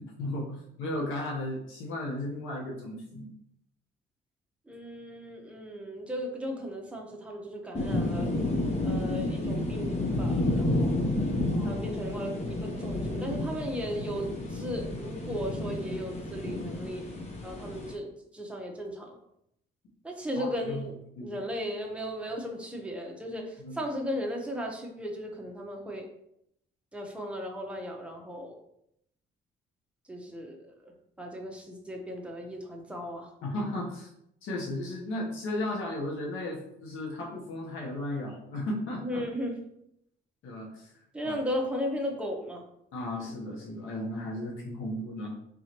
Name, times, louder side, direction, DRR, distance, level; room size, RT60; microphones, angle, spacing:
voice 1, 0.0-3.3 11.5-11.8 20.3-20.8 21.2-21.3 23.6-23.8 33.4-34.1 34.4-39.2 40.4-40.9 41.2-41.3 42.9-45.3, left 1 dB, 85° left, -3 dB, 1.0 m, -35 dB
voice 2, 4.7-8.3 8.8-11.1 11.6-17.1 17.4-19.2 20.0-26.1 26.9-28.6 30.1-30.9 31.2-33.3 39.0-39.5 41.1-42.6 43.1-43.3, equal, 5° right, 0 dB, 0.8 m, -36 dB
sound 1, 7.7-17.9, left 1 dB, 35° left, 0.9 m, -31 dB
3.9 x 3.0 x 2.9 m, 0.76 s
cardioid pair, 90°, 20 cm